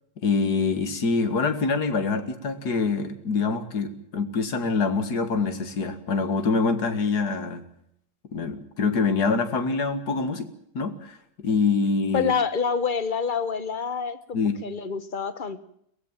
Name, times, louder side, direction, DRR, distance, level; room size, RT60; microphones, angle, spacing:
voice 1, 0.2-7.6 8.3-10.5 10.7-12.3 14.3-14.6, left 4 dB, 65° left, 9 dB, 2.4 m, -25 dB
voice 2, 12.1-15.6, left 6 dB, 30° left, 12 dB, 1.2 m, -27 dB
23.0 x 18.5 x 7.4 m, 0.73 s
omnidirectional pair, 1.9 m